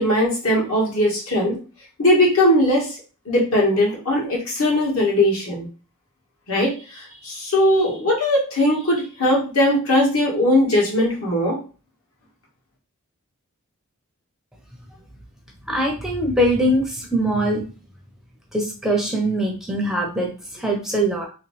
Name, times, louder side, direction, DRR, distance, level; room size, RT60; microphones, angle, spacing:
voice 1, 0.0-1.6 2.0-3.0 3.2-5.7 6.5-11.6, left 1 dB, 65° left, -3 dB, 1.5 m, -19 dB
voice 2, 15.7-17.6 18.5-21.3, right 1 dB, ahead, 0 dB, 0.6 m, -22 dB
3.1 x 3.1 x 3.1 m, 0.35 s
head